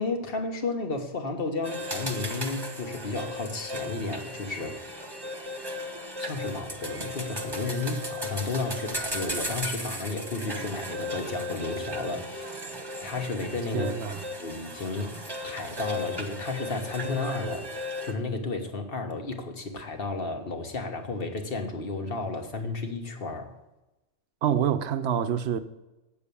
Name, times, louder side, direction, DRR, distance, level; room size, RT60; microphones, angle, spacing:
voice 1, 0.0-5.1 6.2-12.6 13.0-13.9 14.4-23.5, left 3 dB, 45° left, 1.5 m, -33 dB
sound 1, 1.6-18.1, left 1 dB, 20° right, 1.3 m, -36 dB
voice 2, 13.7-14.2 24.4-25.6, right 9 dB, 55° right, 0.9 m, -26 dB
9.0 x 7.4 x 6.8 m
omnidirectional pair, 1.4 m